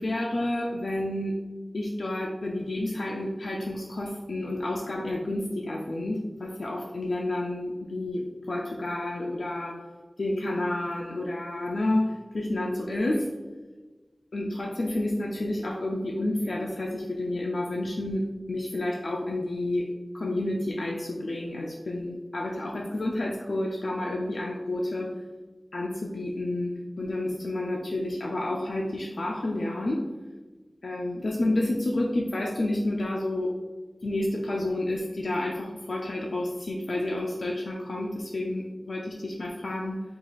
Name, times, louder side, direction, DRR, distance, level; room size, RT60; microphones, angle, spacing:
voice 1, 0.0-1.4 1.7-9.8 10.2-13.3 14.3-19.9 20.1-25.1 25.7-30.0 30.8-33.5 34.0-40.0, left 1 dB, 90° left, -1 dB, 0.4 m, -30 dB
4.6 x 2.4 x 4.1 m, 1.3 s
wide cardioid pair, 45°, 0 cm